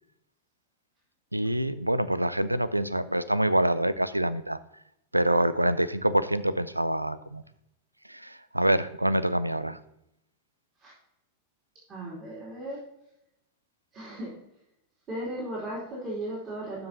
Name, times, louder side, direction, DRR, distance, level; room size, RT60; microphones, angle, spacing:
voice 1, 1.3-4.6 5.1-7.4 8.1-9.8, right 1 dB, 85° right, 16 dB, 0.4 m, -26 dB
voice 2, 11.9-12.8 13.9-14.3 15.1-16.9, right 1 dB, 30° right, -6 dB, 2.9 m, -36 dB
12.5 x 5.3 x 2.8 m, 0.83 s
figure-of-eight pair, 90°, 0 cm